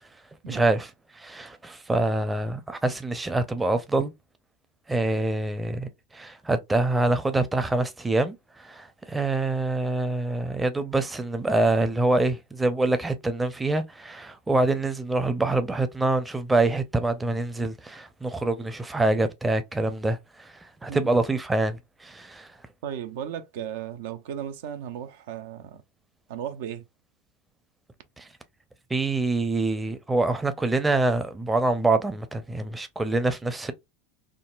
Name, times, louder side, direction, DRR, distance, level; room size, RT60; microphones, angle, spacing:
voice 1, 0.5-4.1 4.9-22.5 28.2-28.3 28.9-33.7, right 2 dB, 10° right, 0.5 m, -25 dB
voice 2, 22.8-25.8 26.3-26.8, right 9 dB, 70° right, 0.4 m, -35 dB
3.6 x 2.0 x 2.4 m
hypercardioid pair, 95°, 0 cm